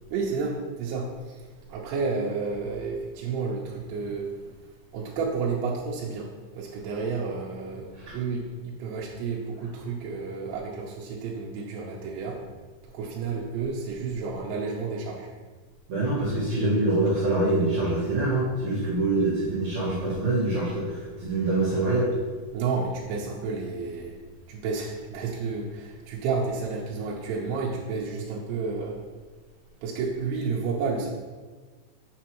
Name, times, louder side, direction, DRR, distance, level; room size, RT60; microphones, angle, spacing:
voice 1, 0.1-4.3 4.9-12.4 12.9-15.3 22.5-24.2 24.5-29.0 29.8-31.1, right 4 dB, 85° right, -3 dB, 3.1 m, -31 dB
voice 2, 15.9-22.1, right 2 dB, 60° right, -10 dB, 2.1 m, -25 dB
7.3 x 6.8 x 3.0 m, 1.4 s
omnidirectional pair, 5.2 m